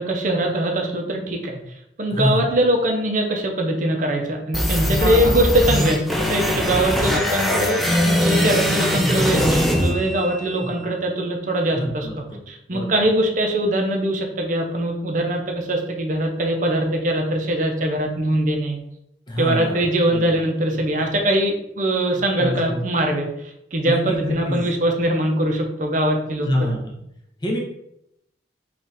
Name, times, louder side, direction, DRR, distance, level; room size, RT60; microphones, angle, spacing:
voice 1, 0.0-1.6 2.0-12.1 12.5-18.8 19.4-23.3 23.7-26.5, right 1 dB, 45° right, 2 dB, 0.6 m, -22 dB
voice 2, 2.1-2.5 4.8-5.4 10.6-10.9 11.7-12.4 12.7-13.0 19.3-20.4 22.4-22.8 23.8-24.8 26.4-26.9 27.4-27.6, equal, 25° left, 0 dB, 0.7 m, -26 dB
sound 1, 4.5-10.6, equal, ahead, 0.3 m, -21 dB
3.6 x 2.4 x 4.0 m, 0.80 s
head